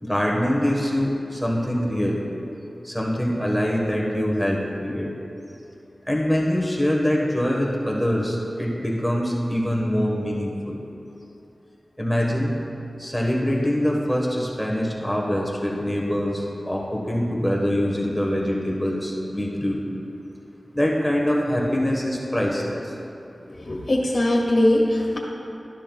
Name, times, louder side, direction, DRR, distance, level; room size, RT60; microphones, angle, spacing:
voice 1, 0.0-2.3 2.8-5.1 6.1-10.8 12.0-12.5 13.0-19.9 20.7-22.9, equal, ahead, -2 dB, 1.3 m, -24 dB
voice 2, 23.6-25.2, left 1 dB, 60° left, -1 dB, 1.5 m, -20 dB
12.0 x 11.5 x 2.3 m, 2.8 s
wide cardioid pair, 75°, 0 cm